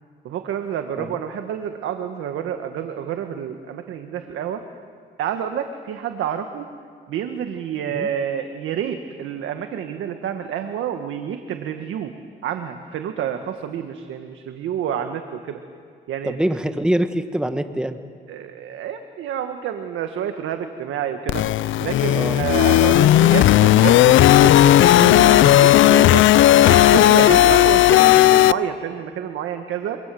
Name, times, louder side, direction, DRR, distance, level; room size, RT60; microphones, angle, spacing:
voice 1, 0.2-4.6 5.2-6.7 7.1-12.1 12.4-15.6 16.1-16.4 18.3-21.4 21.8-26.3 26.6-30.0, right 9 dB, 80° right, 6 dB, 1.7 m, -28 dB
voice 2, 16.2-18.0 22.1-22.7 27.2-27.4, right 1 dB, 5° right, 8 dB, 1.5 m, -25 dB
sound 1, 21.3-28.5, left 13 dB, 75° left, 0.6 m, -14 dB
28.5 x 26.0 x 7.8 m, 2.3 s
cardioid pair, 90°, 20 cm